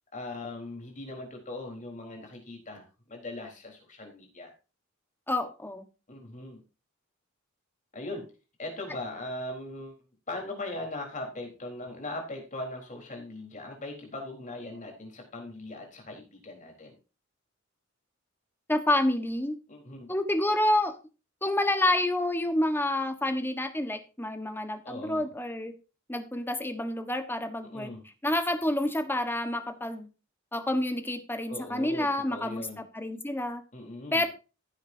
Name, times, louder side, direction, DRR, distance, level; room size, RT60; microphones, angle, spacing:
voice 1, 0.1-4.5 6.1-6.6 7.9-8.3 8.6-9.9 10.3-17.0 19.7-20.1 24.8-25.3 27.7-28.0 31.5-32.8 33.7-34.2, left 2 dB, 40° left, 1 dB, 4.0 m, -39 dB
voice 2, 5.3-5.8 18.7-19.6 20.1-20.9 21.4-25.7 26.1-27.9 28.2-30.1 30.5-32.7 32.9-33.6 34.1-34.3, left 1 dB, 10° left, 8 dB, 1.2 m, -28 dB
15.5 x 8.0 x 2.7 m, 0.32 s
head